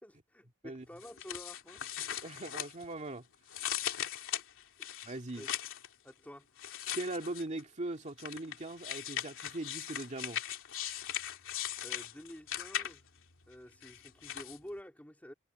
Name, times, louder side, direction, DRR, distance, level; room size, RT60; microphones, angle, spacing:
voice 1, 0.0-1.8 5.3-5.5 6.0-6.5 11.8-13.1 13.5-15.3, equal, 5° left, 3.1 m, -49 dB
sound 1, 1.0-3.1 3.5-5.9 6.6-7.6 8.2-13.2 13.8-14.6, left 10 dB, 65° left, 3.2 m, -39 dB
voice 2, 2.0-3.2 5.0-5.5 6.9-10.4, right 2 dB, 35° right, 2.1 m, -40 dB
head